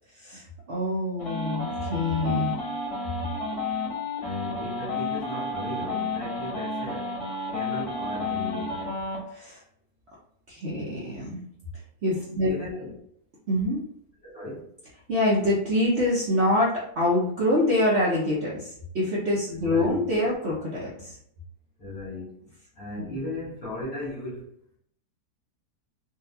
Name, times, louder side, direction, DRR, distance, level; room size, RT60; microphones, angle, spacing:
voice 1, 0.1-2.5 9.3-9.6 10.5-11.4 12.0-12.5 13.5-13.8 15.1-21.2 23.0-23.2, left 1 dB, 55° right, -6 dB, 0.9 m, -25 dB
sound 1, 1.2-9.2, left 2 dB, 85° left, 1.5 m, -31 dB
voice 2, 4.2-7.1 7.5-8.9 12.5-12.9 14.2-14.7 19.6-20.0 21.8-22.3 22.7-24.5, left 1 dB, 40° left, -8 dB, 1.8 m, -36 dB
3.8 x 2.4 x 2.7 m, 0.68 s
omnidirectional pair, 1.6 m